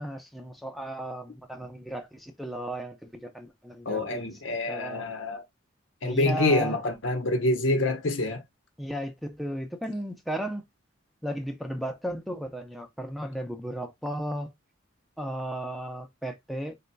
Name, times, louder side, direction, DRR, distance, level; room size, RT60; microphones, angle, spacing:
voice 1, 0.0-4.2 4.7-5.0 6.0-6.8 8.8-10.7 11.2-14.5 15.2-16.7, right 1 dB, ahead, 0.6 m, -35 dB
voice 2, 3.8-5.4 6.0-8.4, left 2 dB, 80° left, 1.0 m, -26 dB
4.2 x 3.9 x 2.2 m
head